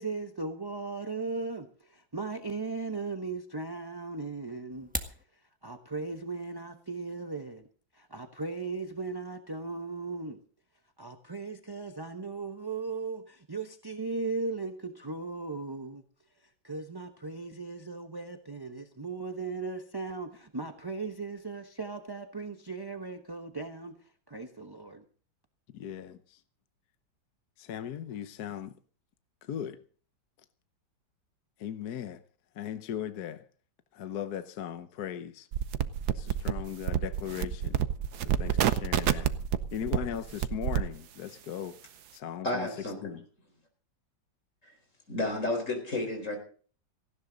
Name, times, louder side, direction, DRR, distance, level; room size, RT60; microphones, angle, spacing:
voice 1, 0.0-7.7 7.9-10.4 11.0-16.0 16.4-25.0, right 3 dB, 20° right, 0.6 m, -37 dB
sound 1, 4.7-5.2, right 1 dB, 5° right, 1.3 m, -36 dB
voice 2, 25.7-26.4 27.6-28.7 29.4-29.8 31.6-32.2 32.5-33.4 33.9-35.5 36.1-37.8 38.2-39.3 39.7-41.7 42.1-42.7 43.0-43.2, left 9 dB, 60° left, 1.4 m, -38 dB
sound 2, 35.5-40.9, right 9 dB, 65° right, 1.3 m, -28 dB
voice 3, 42.4-43.1 44.6-44.7 45.1-46.4, left 2 dB, 40° left, 4.8 m, -32 dB
18.0 x 16.0 x 3.9 m
omnidirectional pair, 2.0 m